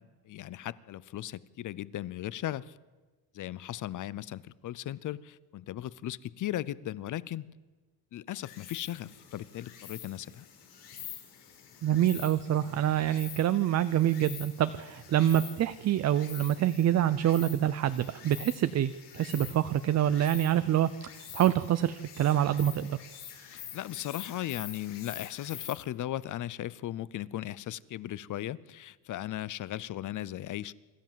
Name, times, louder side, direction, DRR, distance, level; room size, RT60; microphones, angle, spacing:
voice 1, 0.0-2.8 3.3-7.6 8.1-10.5 23.4-30.7, left 13 dB, 50° left, 20 dB, 0.6 m, -37 dB
Insect, 8.4-25.7, left 9 dB, 90° left, 5.1 m, -47 dB
voice 2, 11.8-20.9 21.3-23.0, right 11 dB, 40° right, 13 dB, 0.5 m, -26 dB
26.0 x 13.5 x 7.5 m, 1.2 s
cardioid pair, 165°, 41 cm